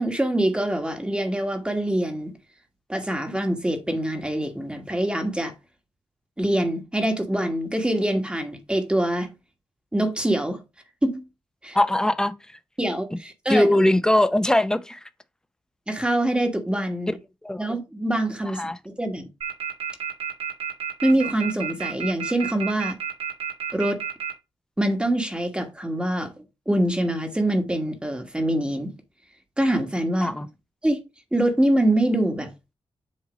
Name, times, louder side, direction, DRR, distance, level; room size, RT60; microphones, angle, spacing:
voice 1, 0.0-2.3 2.9-5.5 6.4-9.3 9.9-10.6 11.0-11.2 11.6-11.8 12.8-13.8 15.9-17.1 17.6-19.2 21.0-23.0 23.7-24.0 24.8-26.3 26.7-28.9 29.6-30.3 30.8-31.0 31.3-32.5, right 1 dB, 10° right, 1.3 m, -24 dB
voice 2, 11.7-12.3 13.5-15.0 17.4-17.7 18.6-18.8 30.2-30.5, left 1 dB, 5° left, 0.6 m, -20 dB
sound 1, 19.4-24.3, right 8 dB, 85° right, 1.9 m, -30 dB
7.5 x 2.7 x 5.1 m
cardioid pair, 90°, 9 cm